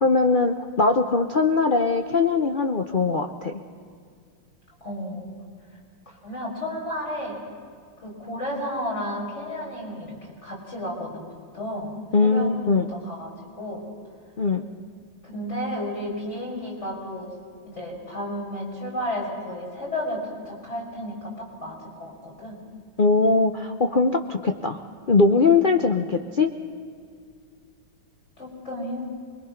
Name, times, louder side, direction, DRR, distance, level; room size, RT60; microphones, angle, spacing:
voice 1, 0.0-3.6 12.1-12.9 14.4-14.7 23.0-24.8 25.1-26.5, left 4 dB, 80° left, 5 dB, 0.4 m, -21 dB
voice 2, 4.8-5.2 6.1-7.4 8.0-11.9 12.2-12.5 12.9-13.3 13.6-13.8 15.2-17.3 17.7-22.6 25.8-25.9 28.4-29.1, equal, 35° left, -3 dB, 5.5 m, -32 dB
25.0 x 22.0 x 5.8 m, 2.2 s
omnidirectional pair, 2.2 m